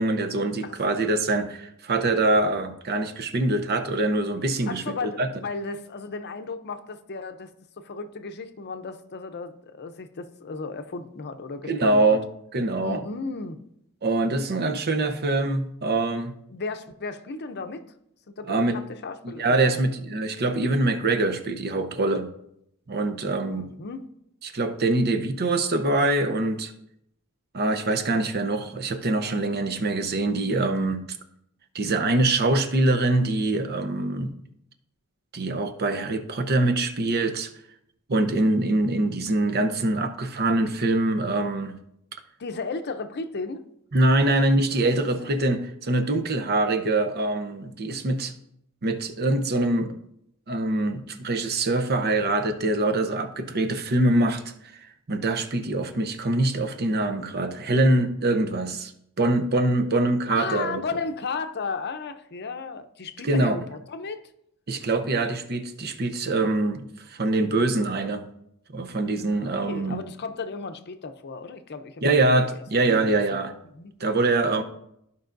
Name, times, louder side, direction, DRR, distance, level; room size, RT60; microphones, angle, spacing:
voice 1, 0.0-5.3 11.7-12.2 12.5-13.0 14.0-16.3 18.5-18.8 19.4-22.3 22.9-23.7 24.4-26.7 27.5-31.0 31.7-34.3 35.3-37.5 38.1-41.8 43.9-48.3 48.8-49.9 50.5-54.4 54.8-58.9 59.2-60.8 63.2-63.6 64.7-68.3 68.7-70.0 72.0-73.5 74.0-74.6, right 2 dB, 50° right, 8 dB, 0.8 m, -24 dB
voice 2, 4.7-7.5 7.8-12.2 12.8-13.6 16.5-17.8 18.3-19.8 23.5-24.1 42.4-43.6 45.1-45.3 60.3-64.2 69.0-72.5 72.9-73.4 73.7-73.9, left 4 dB, 50° left, 9 dB, 0.6 m, -34 dB
14.0 x 5.4 x 2.6 m, 0.76 s
head